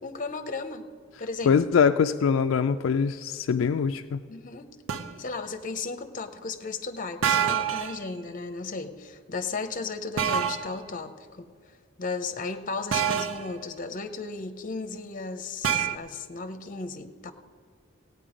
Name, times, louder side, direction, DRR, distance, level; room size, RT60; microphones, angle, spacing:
voice 1, 0.0-0.8 1.2-1.6 4.3-4.8 5.2-11.5 12.0-17.3, left 4 dB, 40° left, 9 dB, 0.7 m, -35 dB
voice 2, 1.5-4.2, left 6 dB, 70° left, 8 dB, 0.3 m, -23 dB
sound 1, 4.9-5.2 7.2-8.0 10.2-10.7 12.9-13.5 15.6-16.0, right 8 dB, 75° right, 0.6 m, -26 dB
16.0 x 9.2 x 5.0 m, 2.1 s
head